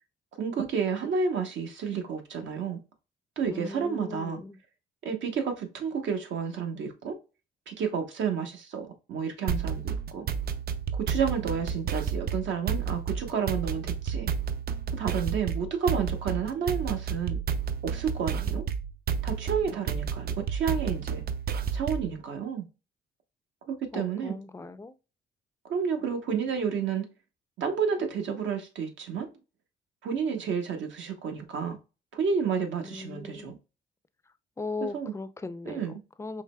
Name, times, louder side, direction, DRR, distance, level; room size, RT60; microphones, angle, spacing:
voice 1, 0.4-2.8 3.4-4.4 5.0-7.2 7.7-10.3 10.9-14.3 14.9-17.4 17.8-18.6 19.2-21.2 21.7-22.7 23.7-24.4 25.7-27.1 27.6-29.3 30.0-31.8 32.1-33.6 34.8-35.1 35.7-36.0, right 6 dB, 70° right, 1.0 m, -30 dB
voice 2, 3.5-4.6 23.9-24.9 32.8-33.5 34.6-36.4, left 3 dB, 15° left, 0.4 m, -38 dB
sound 1, 9.5-22.2, right 7 dB, 50° right, 0.5 m, -31 dB
4.7 x 3.0 x 2.2 m
cardioid pair, 90°, 20 cm